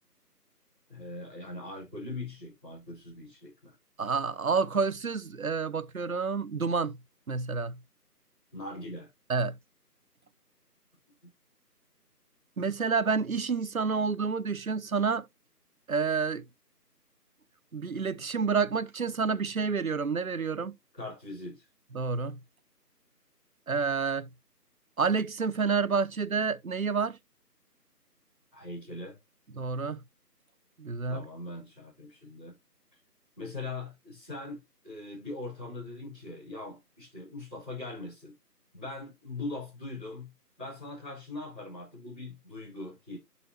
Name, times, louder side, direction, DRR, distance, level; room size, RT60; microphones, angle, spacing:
voice 1, 0.9-3.7 8.5-9.1 21.0-21.7 28.5-29.2 31.1-32.5 33.4-34.6 34.8-38.3 38.7-40.3 40.6-43.2, left 2 dB, 5° left, 2.7 m, -41 dB
voice 2, 4.0-7.0 7.3-7.8 9.3-9.6 12.6-15.3 15.9-16.4 17.7-20.7 21.9-22.4 23.7-24.3 25.0-27.2 29.5-30.0 30.8-31.2, right 5 dB, 60° right, 0.6 m, -29 dB
11.0 x 4.1 x 2.9 m
figure-of-eight pair, 170°, 49 cm